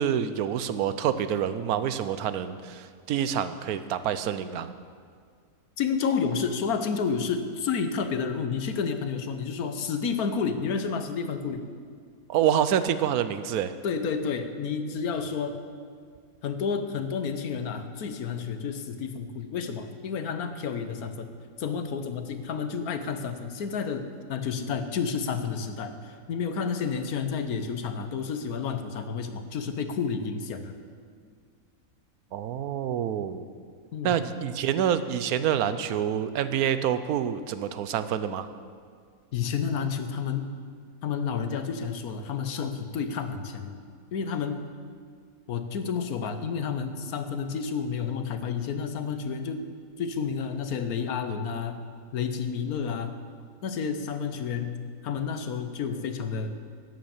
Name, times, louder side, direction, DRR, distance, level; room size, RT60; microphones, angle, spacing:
voice 1, 0.0-4.7 12.3-13.7 32.3-33.4 34.0-38.5, right 9 dB, 80° right, 12 dB, 1.1 m, -27 dB
voice 2, 5.8-11.6 13.8-15.6 16.4-21.3 21.6-30.7 33.9-34.2 39.3-40.5 41.0-43.8 44.1-44.7 45.5-49.7 50.0-51.8 52.1-53.1 53.6-56.5, left 6 dB, 80° left, 8 dB, 1.4 m, -30 dB
11.5 x 9.5 x 7.1 m, 2.1 s
omnidirectional pair, 1.5 m